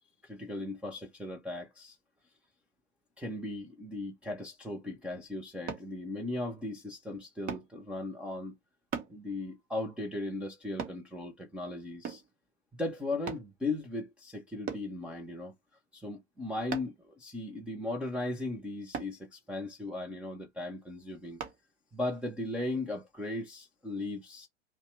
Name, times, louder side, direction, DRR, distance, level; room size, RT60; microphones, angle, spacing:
voice 1, 0.2-2.0 3.2-8.5 9.1-12.2 12.8-15.5 15.9-21.4 21.9-24.5, left 2 dB, 5° right, 0.7 m, -37 dB
sound 1, 5.7-5.9 7.5-7.7 8.9-9.2 10.8-11.0 12.0-12.3 13.3-13.5 14.7-14.9 16.7-17.0 18.9-19.2 21.4-21.6 22.2-22.3, right 6 dB, 25° right, 1.1 m, -38 dB
5.4 x 2.2 x 3.2 m
figure-of-eight pair, 105°, 34 cm